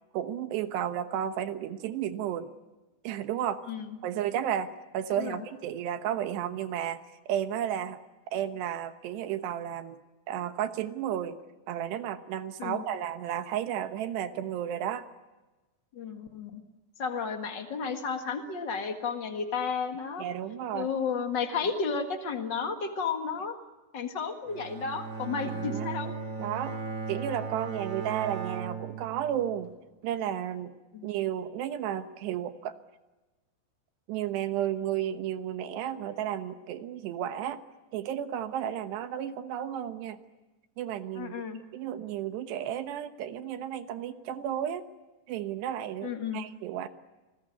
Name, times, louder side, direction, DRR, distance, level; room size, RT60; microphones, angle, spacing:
voice 1, 0.1-2.5 3.0-3.6 4.0-7.0 7.3-8.0 8.3-10.0 10.3-11.4 11.7-15.0 20.2-20.9 25.5-25.9 26.4-26.8 27.1-29.7 30.0-30.7 31.0-32.8 34.1-37.6 37.9-40.2 40.8-41.4 41.7-44.9 45.3-46.9, right 10 dB, 80° right, 9 dB, 3.3 m, -33 dB
voice 2, 5.1-5.4 12.6-12.8 15.9-16.6 17.0-20.2 20.7-23.5 23.9-26.2 30.9-31.1 41.2-41.6 46.0-46.5, left 5 dB, 65° left, 6 dB, 1.0 m, -32 dB
Bowed string instrument, 24.5-29.7, right 5 dB, 30° right, 3.9 m, -37 dB
29.0 x 20.5 x 9.9 m, 1.1 s
omnidirectional pair, 5.0 m